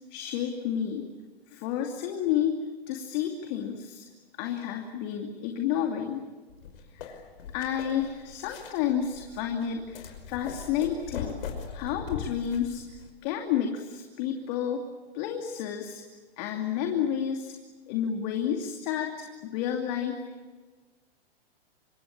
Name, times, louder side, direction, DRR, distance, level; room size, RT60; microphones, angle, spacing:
voice 1, 0.1-1.0 1.5-2.5 2.9-4.0 4.4-6.2 6.9-7.2 7.5-11.4 11.7-12.8 13.2-14.8 15.1-16.0 16.4-17.5 17.9-20.2, left 9 dB, 45° left, 3 dB, 2.7 m, -30 dB
sound 1, 6.5-13.1, left 6 dB, 65° left, 5.5 m, -40 dB
26.0 x 23.5 x 8.9 m, 1.3 s
hypercardioid pair, 125°, 30 cm